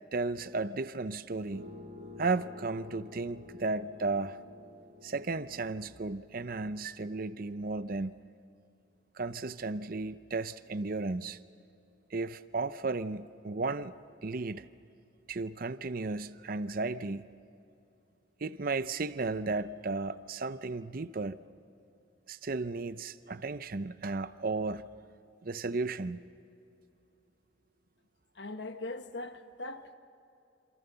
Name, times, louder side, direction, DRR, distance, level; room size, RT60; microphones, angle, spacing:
voice 1, 0.1-1.7 2.2-4.4 5.0-8.1 9.1-11.4 12.1-13.9 14.2-14.7 15.3-17.2 18.4-21.4 22.3-24.9 25.4-26.2, right 3 dB, 45° right, 0.6 m, -34 dB
sound 1, 1.5-6.7, left 3 dB, 80° right, 2.8 m, -50 dB
voice 2, 28.3-29.9, left 2 dB, 60° left, 1.4 m, -40 dB
27.5 x 27.5 x 6.9 m
head